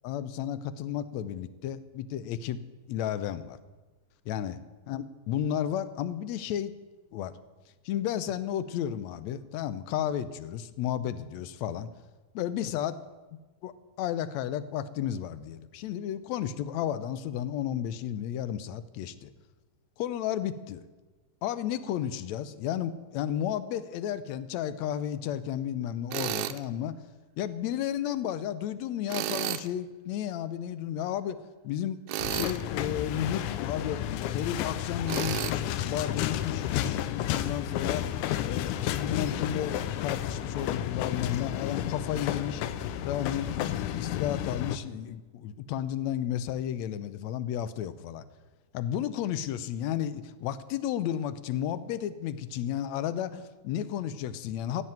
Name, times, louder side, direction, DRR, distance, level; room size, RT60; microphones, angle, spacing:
voice 1, 0.0-2.6 2.9-3.6 4.3-4.6 4.9-6.7 7.1-7.3 7.9-11.9 12.3-13.0 13.6-13.7 14.0-19.3 20.0-20.8 21.4-27.0 27.4-31.4 31.6-34.0 34.3-38.0 38.4-42.6 43.0-48.2 48.7-54.8, left 10 dB, 75° left, 15 dB, 1.9 m, -33 dB
Tools, 26.1-26.6 29.1-29.7 32.1-32.6 35.1-35.6, right 14 dB, 90° right, 2.1 m, -31 dB
sound 1, 32.2-44.8, left 11 dB, 90° left, 2.2 m, -32 dB
16.0 x 7.8 x 9.1 m, 1.2 s
omnidirectional pair, 3.5 m